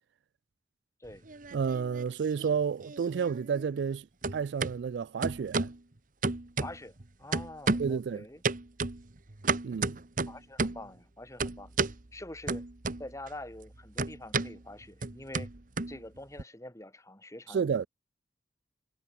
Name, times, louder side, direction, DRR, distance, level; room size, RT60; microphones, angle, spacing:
sound 1, 1.1-2.1 2.4-4.0 4.2-4.7 5.2-5.8 6.2-7.0 7.3-8.0 8.4-10.9 11.4-12.0 12.5-13.3 13.6-16.4, right 3 dB, 45° right, 1.3 m, -32 dB
voice 1, 1.5-4.1 4.3-5.7 7.8-8.2 9.6-10.0 17.5-17.9, right 6 dB, 70° right, 0.3 m, -31 dB
voice 2, 6.6-6.9 7.2-8.4 10.3-11.8 12.1-12.7 13.0-15.5 15.9-17.8, left 1 dB, 15° left, 3.6 m, -45 dB
head